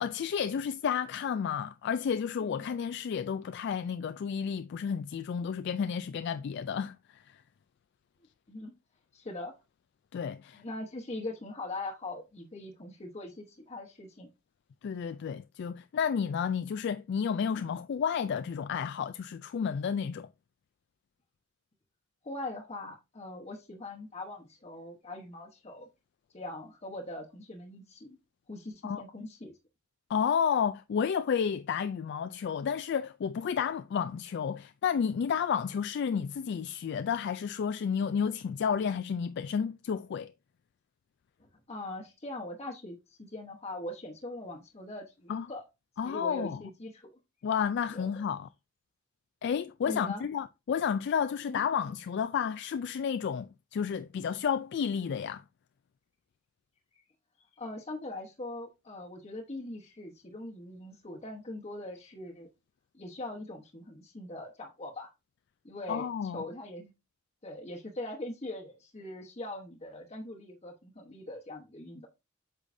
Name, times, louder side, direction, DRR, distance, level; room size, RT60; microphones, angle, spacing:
voice 1, 0.0-7.4 10.1-10.6 14.8-20.3 28.8-29.0 30.1-40.3 45.3-45.5 46.0-46.6 47.4-48.5 49.4-55.4 65.9-66.4, left 7 dB, 55° left, 0.3 m, -31 dB
voice 2, 9.1-9.5 10.5-14.3 22.2-25.9 26.3-28.2 28.5-29.5 41.4-45.6 46.0-47.1 47.9-48.1 49.9-50.3 51.5-51.6 57.4-62.5 62.9-65.1 65.6-66.9 67.4-72.1, left 2 dB, 30° left, 1.0 m, -41 dB
8.2 x 5.5 x 2.6 m
head